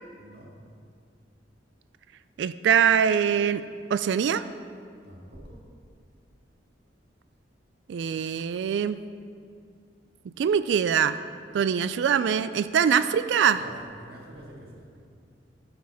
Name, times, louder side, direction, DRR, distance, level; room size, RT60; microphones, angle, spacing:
voice 1, 0.2-0.5 5.0-5.6 13.4-13.7 14.0-14.9, right 1 dB, 55° right, -3 dB, 2.3 m, -46 dB
voice 2, 2.4-3.6 3.9-4.4 7.9-9.0 10.3-11.2 11.5-13.6, right 8 dB, 70° right, 13 dB, 0.3 m, -23 dB
11.0 x 5.9 x 6.3 m, 2.2 s
head